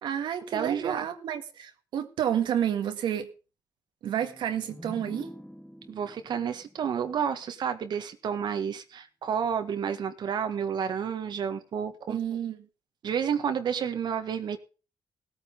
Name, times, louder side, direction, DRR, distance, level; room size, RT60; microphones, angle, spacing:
voice 1, 0.0-3.3 4.0-5.3 12.1-12.6, right 9 dB, 80° right, 1.9 m, -30 dB
voice 2, 0.5-1.1 5.9-12.2 13.0-14.6, right 7 dB, 65° right, 1.7 m, -30 dB
sound 1, 4.2-7.9, equal, 5° left, 1.3 m, -47 dB
17.5 x 8.9 x 5.2 m
cardioid pair, 85°, 8 cm